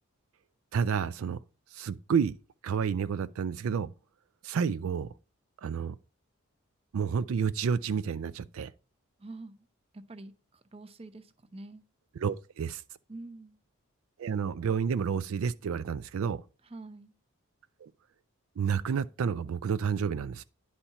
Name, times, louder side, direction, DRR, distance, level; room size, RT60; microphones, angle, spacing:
voice 1, 0.7-1.4 1.7-2.3 2.6-3.9 4.4-5.1 5.6-5.9 6.9-8.7 12.2-12.8 14.2-16.4 17.8-17.9 18.6-20.4, right 6 dB, 75° right, 0.4 m, -30 dB
voice 2, 9.2-9.7 9.9-11.8 13.1-13.6 16.6-17.1, right 2 dB, 25° right, 0.6 m, -46 dB
10.0 x 4.3 x 5.6 m
head